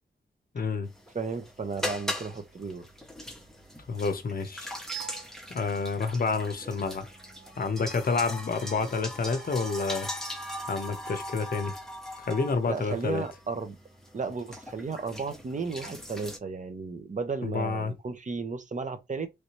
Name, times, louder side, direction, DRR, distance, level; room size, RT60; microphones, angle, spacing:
voice 1, 0.5-0.9 3.9-4.7 5.5-7.1 7.6-10.1 10.7-11.8 12.3-13.2 17.4-17.9, left 4 dB, 50° left, 0.7 m, -29 dB
sound 1, 0.9-16.4, left 1 dB, ahead, 0.6 m, -40 dB
voice 2, 1.1-2.9 12.7-13.8 14.1-19.3, right 4 dB, 45° right, 0.6 m, -34 dB
sound 2, 4.9-5.4 6.5-7.8 9.1-10.0, right 10 dB, 85° right, 0.6 m, -45 dB
3.2 x 2.7 x 3.0 m
wide cardioid pair, 140°, 18 cm